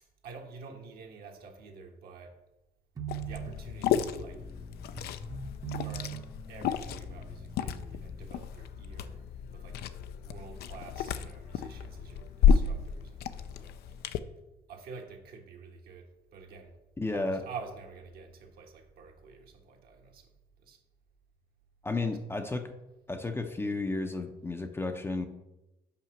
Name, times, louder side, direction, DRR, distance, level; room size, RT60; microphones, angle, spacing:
voice 1, 0.2-2.4 3.2-4.5 5.7-9.3 9.5-9.8 10.2-13.8 14.7-16.8 17.1-20.3 20.6-20.8, right 5 dB, 65° right, 1.3 m, -48 dB
sound 1, 3.0-8.3, right 5 dB, 20° right, 0.7 m, -42 dB
Liquid, 3.1-14.2, left 7 dB, 70° left, 0.5 m, -32 dB
voice 2, 17.0-17.4 21.8-22.7 23.1-25.3, left 3 dB, 15° left, 0.6 m, -32 dB
5.8 x 5.0 x 5.8 m
cardioid pair, 110°, 17 cm